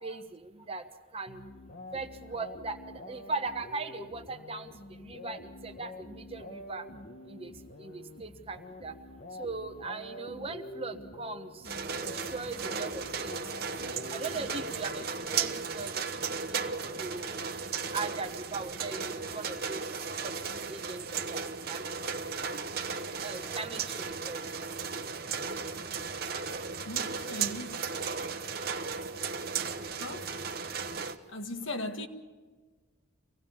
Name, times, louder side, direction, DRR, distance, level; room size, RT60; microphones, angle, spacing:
voice 1, 0.0-0.8 1.1-1.4 1.9-2.8 3.1-4.7 5.0-6.8 7.3-7.5 7.8-8.9 9.4-11.5 12.3-13.4 14.1-16.0 16.5-16.7 17.0-17.4 17.9-19.8 20.2-20.3 20.7-22.2 22.5-22.6 23.2-24.5, right 3 dB, 25° right, 1.2 m, -39 dB
sound 1, 1.3-15.6, left 2 dB, 45° left, 1.2 m, -47 dB
sound 2, 11.6-31.2, right 5 dB, 45° right, 1.1 m, -35 dB
voice 2, 26.8-27.8 30.0-30.4 31.3-32.1, left 1 dB, 65° left, 1.6 m, -39 dB
25.0 x 18.0 x 7.2 m
head